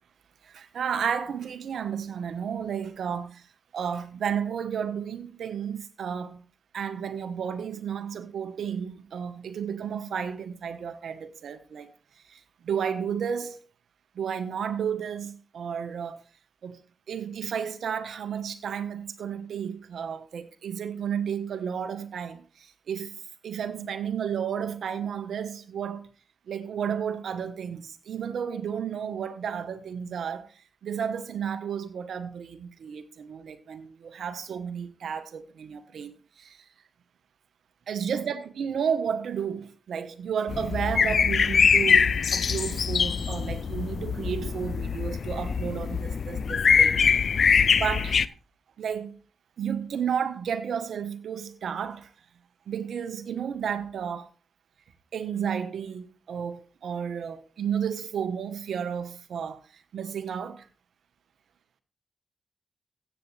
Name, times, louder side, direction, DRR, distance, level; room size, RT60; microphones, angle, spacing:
voice 1, 0.4-3.5 3.7-6.4 6.7-11.9 12.3-13.6 14.1-16.2 16.6-16.8 17.1-23.1 23.4-26.1 26.5-30.5 30.8-36.6 37.9-47.0 47.7-48.2 48.8-49.1 49.6-52.1 52.7-54.3 55.1-60.7, right 7 dB, 80° right, 1.3 m, -32 dB
sound 1, 40.5-48.3, left 6 dB, 65° left, 0.5 m, -23 dB
14.5 x 8.7 x 3.4 m
cardioid pair, 60°, 0 cm